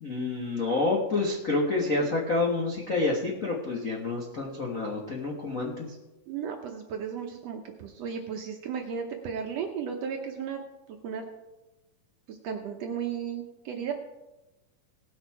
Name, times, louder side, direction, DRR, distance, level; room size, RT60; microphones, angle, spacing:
voice 1, 0.0-5.9, left 3 dB, 65° left, -2 dB, 0.7 m, -28 dB
voice 2, 6.3-10.6 10.9-11.3 12.3-13.9, right 7 dB, 70° right, 3 dB, 1.6 m, -35 dB
18.5 x 6.4 x 4.7 m, 1.0 s
omnidirectional pair, 3.7 m